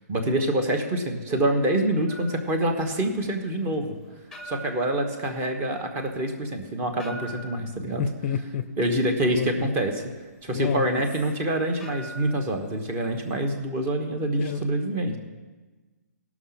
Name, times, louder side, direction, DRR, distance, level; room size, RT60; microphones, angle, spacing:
voice 1, 0.1-4.0 4.4-8.0 8.8-10.0 10.4-15.2, right 1 dB, 25° right, 5 dB, 1.3 m, -26 dB
sound 1, 2.1-13.4, right 1 dB, 5° left, 0.8 m, -46 dB
voice 2, 8.0-8.7 9.3-9.5 10.5-11.0 14.4-14.6, left 8 dB, 40° left, 12 dB, 0.5 m, -29 dB
16.5 x 6.0 x 5.8 m, 1.3 s
hypercardioid pair, 150°, 9 cm